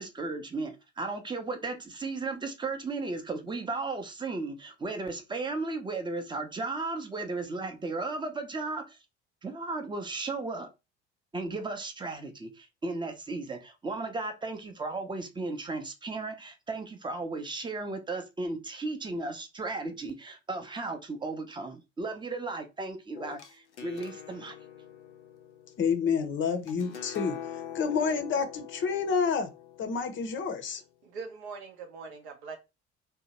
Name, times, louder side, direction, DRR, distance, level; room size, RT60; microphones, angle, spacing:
voice 1, 0.0-9.0 9.4-10.7 11.3-24.6, right 3 dB, 15° right, 0.6 m, -35 dB
sound 1, 23.1-30.9, left 9 dB, 85° left, 0.5 m, -44 dB
voice 2, 25.8-29.5 29.8-30.8, left 6 dB, 35° left, 0.6 m, -29 dB
voice 3, 31.0-32.6, right 5 dB, 65° right, 0.7 m, -42 dB
2.7 x 2.2 x 2.8 m
figure-of-eight pair, 55°, 34 cm